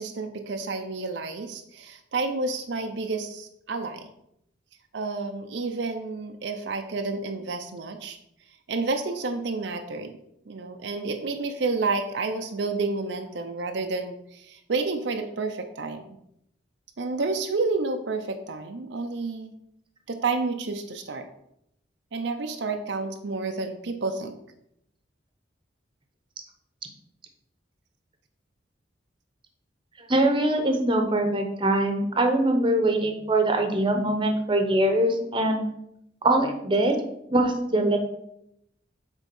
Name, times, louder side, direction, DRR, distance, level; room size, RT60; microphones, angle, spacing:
voice 1, 0.0-4.1 4.9-8.2 8.7-10.1 10.5-16.1 17.0-19.5 20.1-21.3 22.1-24.4, right 3 dB, 70° right, 5 dB, 0.6 m, -30 dB
voice 2, 30.0-35.6 36.2-37.0 37.3-38.0, right 1 dB, 25° right, 4 dB, 0.9 m, -23 dB
8.2 x 3.6 x 5.3 m, 0.78 s
head